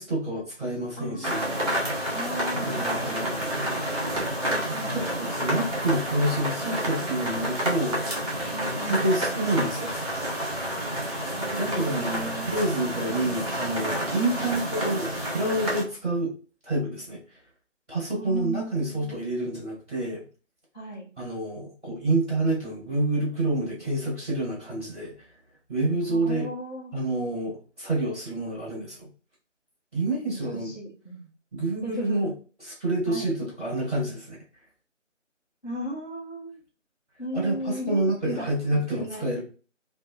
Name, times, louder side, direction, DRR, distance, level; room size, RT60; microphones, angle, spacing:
voice 1, 0.0-1.7 2.6-3.5 4.7-8.2 8.9-10.1 11.0-16.3 16.6-17.4 17.9-20.2 21.2-25.1 25.7-26.5 26.9-29.1 29.9-30.7 31.5-32.3 32.6-34.4 37.3-39.4, right 1 dB, 10° left, -7 dB, 1.4 m, -28 dB
voice 2, 1.0-1.4 2.1-3.3 4.7-5.5 8.5-9.4 11.3-12.5 18.1-19.2 20.7-21.1 26.0-26.9 30.5-31.3 31.8-32.3 33.1-33.3 35.6-36.6 37.2-39.4, right 1 dB, 35° left, -10 dB, 0.9 m, -37 dB
sound 1, 1.2-15.8, equal, 30° right, 1.1 m, -29 dB
3.2 x 2.2 x 2.5 m, 0.37 s
figure-of-eight pair, 165°, 37 cm